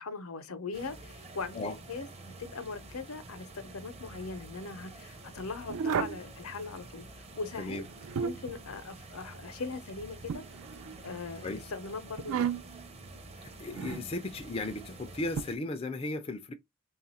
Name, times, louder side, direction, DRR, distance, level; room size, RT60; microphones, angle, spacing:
voice 1, 0.0-7.8 8.1-10.4 11.0-12.6, left 4 dB, 75° left, 0.7 m, -40 dB
sound 1, 0.7-15.6, right 2 dB, 30° right, 0.7 m, -49 dB
sound 2, 5.7-6.3 7.8-8.6 10.3-11.2 12.2-12.8 13.7-14.1 15.4-15.5, right 7 dB, 75° right, 0.4 m, -33 dB
voice 2, 13.4-16.5, left 2 dB, 25° left, 0.4 m, -36 dB
3.4 x 2.4 x 4.1 m
head